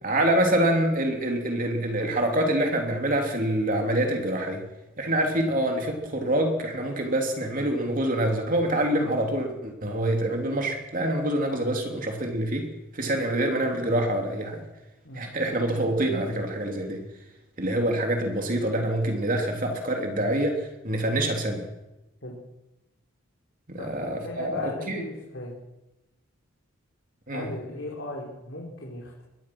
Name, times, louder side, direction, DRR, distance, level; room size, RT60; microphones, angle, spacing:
voice 1, 0.0-4.6 5.0-12.7 12.9-14.6 15.1-17.0 17.6-20.6 20.8-21.7 23.8-25.0 27.3-27.5, right 1 dB, 40° right, 2 dB, 3.2 m, -26 dB
voice 2, 24.2-25.5 27.3-29.2, left 2 dB, 60° left, -2 dB, 4.3 m, -37 dB
24.0 x 21.0 x 6.2 m, 0.99 s
head